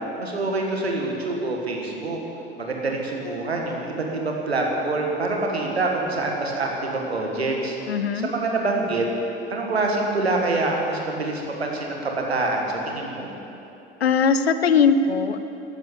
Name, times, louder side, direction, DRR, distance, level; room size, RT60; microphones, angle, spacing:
voice 1, 0.2-2.2 2.6-9.1 9.5-13.3, right 2 dB, 85° right, 0 dB, 1.9 m, -26 dB
voice 2, 7.9-8.3 14.0-15.4, left 5 dB, 80° left, 12 dB, 0.7 m, -20 dB
14.0 x 12.5 x 6.9 m, 3.0 s
figure-of-eight pair, 60°, 31 cm